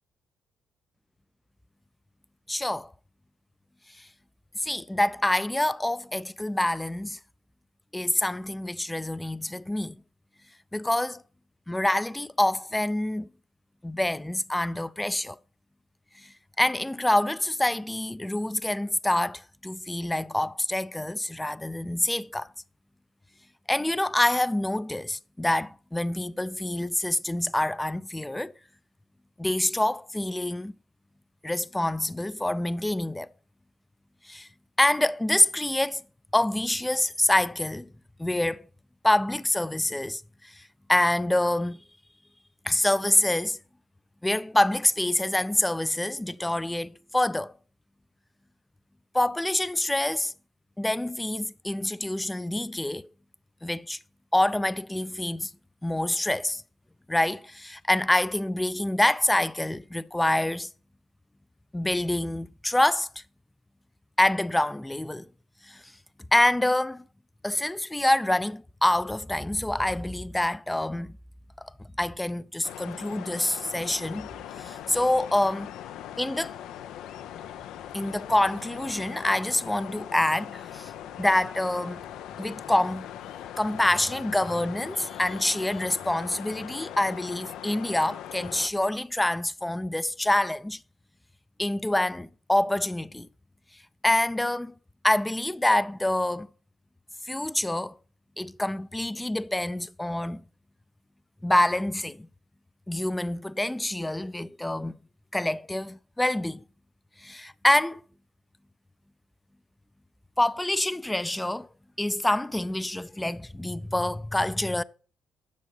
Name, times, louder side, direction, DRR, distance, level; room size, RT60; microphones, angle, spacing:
voice 1, 2.5-2.9 4.0-4.1 4.6-7.2 7.9-10.0 10.7-11.2 11.7-13.3 13.8-15.4 16.2-16.3 16.6-22.5 23.7-28.5 29.4-30.7 31.4-33.3 34.2-34.5 34.8-36.0 36.3-37.9 38.2-38.7 39.0-41.8 42.6-43.6 44.2-47.5 49.1-50.3 50.8-53.1 53.6-54.0 54.3-55.5 55.8-56.6 57.1-60.7 61.7-63.2 64.2-65.3 65.7-65.8 66.3-67.0 67.4-71.1 71.6-71.7 72.0-74.3 74.6-75.7 76.2-76.5 77.9-80.9 81.2-82.0 82.4-83.1 83.6-90.8 91.6-93.3 94.0-94.7 95.0-96.5 97.3-97.9 98.4-100.4 101.4-102.3 102.9-104.9 105.3-106.6 107.2-108.0 110.4-111.7 112.0-114.8, left 1 dB, 10° left, 0.4 m, -26 dB
sound 1, 72.6-88.7, left 11 dB, 85° left, 0.5 m, -41 dB
10.5 x 6.4 x 5.5 m
cardioid pair, 90°, 0 cm